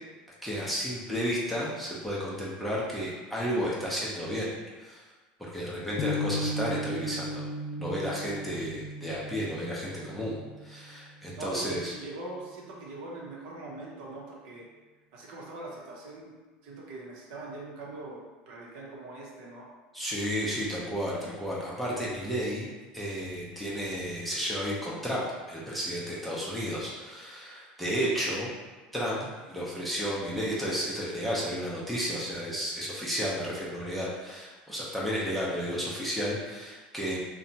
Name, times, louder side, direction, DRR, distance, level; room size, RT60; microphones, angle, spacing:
voice 1, 0.4-4.5 4.8-5.0 5.5-7.4 7.8-10.4 10.6-11.9 19.9-28.5 28.9-29.2 29.5-37.2, equal, ahead, -7 dB, 0.6 m, -32 dB
sound 1, 6.0-12.0, equal, 50° left, 0.3 m, -36 dB
voice 2, 11.4-14.6 15.1-16.3 16.6-19.7, right 2 dB, 75° right, -3 dB, 0.7 m, -41 dB
2.7 x 2.2 x 2.7 m, 1.3 s
supercardioid pair, 105°, 4 cm